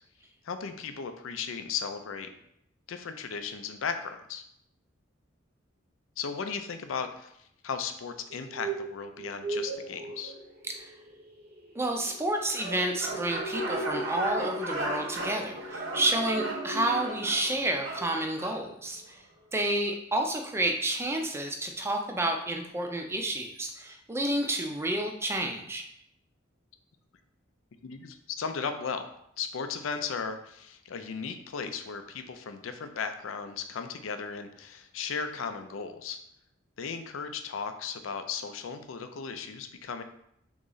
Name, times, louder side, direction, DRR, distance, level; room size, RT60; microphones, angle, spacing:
voice 1, 0.4-2.3 2.9-4.4 6.2-10.3 27.8-29.1 29.4-36.2 36.8-40.0, left 6 dB, 85° left, 8 dB, 0.5 m, -36 dB
sound 1, 8.3-17.5 17.8-18.2 18.4-18.5, right 2 dB, 50° right, 0.7 m, -39 dB
voice 2, 11.7-19.2 19.5-25.8, right 1 dB, 15° right, 3 dB, 0.4 m, -30 dB
sound 2, 12.5-18.6, right 2 dB, 75° right, 1.1 m, -36 dB
3.8 x 3.0 x 3.8 m, 0.74 s
head